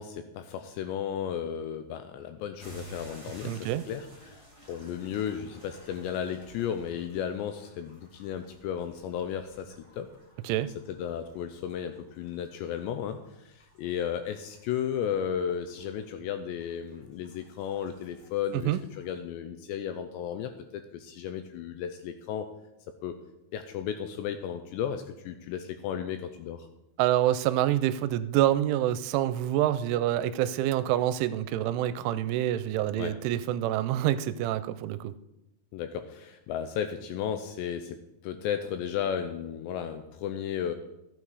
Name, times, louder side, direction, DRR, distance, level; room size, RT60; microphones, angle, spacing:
voice 1, 0.0-10.1 10.9-13.2 13.5-22.5 23.0-23.1 23.5-26.7 33.0-33.1 35.7-40.7, left 8 dB, 85° left, 8 dB, 2.6 m, -34 dB
sound 1, 2.6-19.2, right 1 dB, 50° left, 0.4 m, -54 dB
voice 2, 3.4-3.8 10.4-10.7 18.5-18.8 27.0-35.1, right 13 dB, 85° right, 14 dB, 3.0 m, -27 dB
13.5 x 8.9 x 4.8 m, 0.90 s
omnidirectional pair, 5.5 m